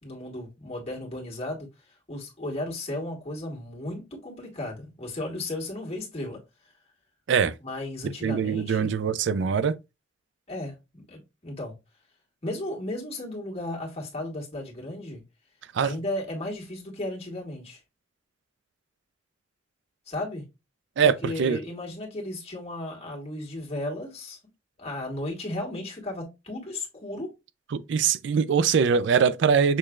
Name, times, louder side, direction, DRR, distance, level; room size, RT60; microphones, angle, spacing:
voice 1, 0.0-6.4 7.6-9.0 10.5-11.7 12.4-15.2 15.8-17.8 20.1-20.4 21.0-24.4 24.8-27.3, left 1 dB, 35° left, 2.0 m, -35 dB
voice 2, 8.2-9.8 15.7-15.9 21.0-21.6 27.7-29.8, right 6 dB, 70° right, 0.4 m, -22 dB
6.6 x 3.1 x 2.4 m
head